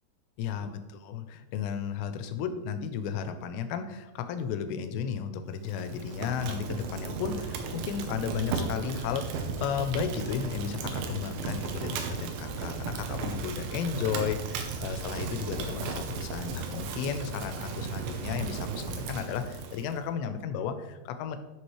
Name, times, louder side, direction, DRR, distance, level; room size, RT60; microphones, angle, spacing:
voice 1, 0.4-21.4, left 7 dB, 85° left, 9 dB, 2.8 m, -34 dB
Fire, 5.6-20.0, right 5 dB, 85° right, 3.2 m, -35 dB
11.5 x 6.0 x 3.1 m, 1.1 s
omnidirectional pair, 5.1 m